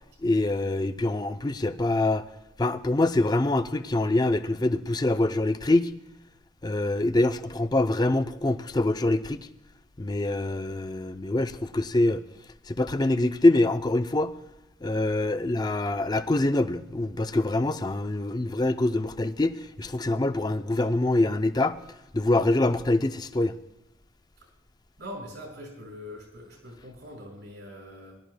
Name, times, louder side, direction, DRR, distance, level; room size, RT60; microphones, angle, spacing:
voice 1, 0.2-2.2 2.6-5.9 6.6-9.5 10.0-12.2 12.7-14.4 14.8-21.8 22.1-23.6, left 2 dB, 20° left, 0.5 m, -25 dB
voice 2, 25.0-28.1, equal, 70° right, 5.4 m, -42 dB
22.0 x 12.0 x 2.2 m
head